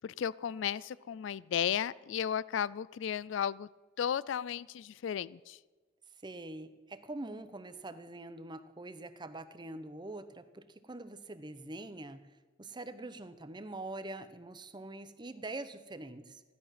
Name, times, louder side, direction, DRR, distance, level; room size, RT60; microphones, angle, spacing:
voice 1, 0.0-3.7 4.0-5.6, left 8 dB, 70° left, 21 dB, 0.3 m, -34 dB
voice 2, 6.2-12.2 12.6-16.4, right 2 dB, 25° right, 11 dB, 0.8 m, -44 dB
15.5 x 11.5 x 5.9 m, 1.3 s
head